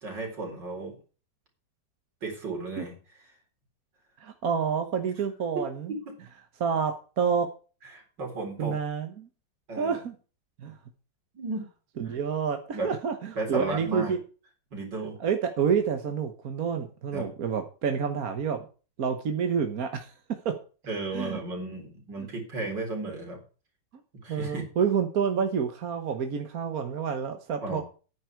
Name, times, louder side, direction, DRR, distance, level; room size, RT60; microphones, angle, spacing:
voice 1, 0.0-0.9 2.2-2.9 5.5-5.6 5.9-6.0 7.9-8.7 9.7-10.0 11.3-11.6 12.0-12.1 12.7-12.9 13.4-14.2 14.7-15.1 17.1-17.3 20.8-23.4 24.2-24.6 27.6-27.8, right 2 dB, 70° right, 2 dB, 4.6 m, -34 dB
voice 2, 4.2-5.9 6.6-7.5 8.6-9.3 9.8-10.1 10.6-10.7 12.0-14.2 15.2-18.6 19.0-20.1 20.4-20.5 21.1-21.4 22.2-22.3 24.3-27.8, right 6 dB, 55° right, 6 dB, 1.5 m, -28 dB
9.9 x 9.6 x 4.6 m, 0.36 s
omnidirectional pair, 2.0 m